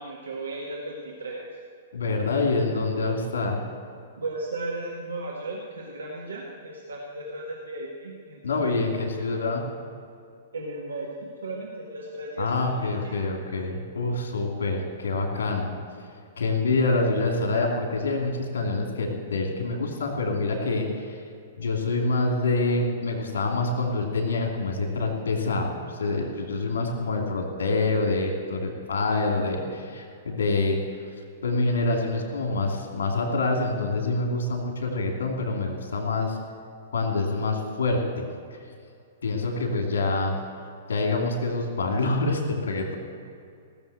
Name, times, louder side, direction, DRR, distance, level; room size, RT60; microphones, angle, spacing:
voice 1, 0.0-1.5 4.2-8.9 10.5-13.2, right 2 dB, 75° right, -2 dB, 1.8 m, -36 dB
voice 2, 1.9-3.6 8.4-9.6 12.4-15.7 16.4-21.2 21.6-25.7 26.0-30.8 31.4-36.4 36.9-38.3 39.2-40.4 40.9-43.0, left 3 dB, 65° left, 2 dB, 2.7 m, -26 dB
17.5 x 7.3 x 8.0 m, 2.4 s
figure-of-eight pair, 110°, 0 cm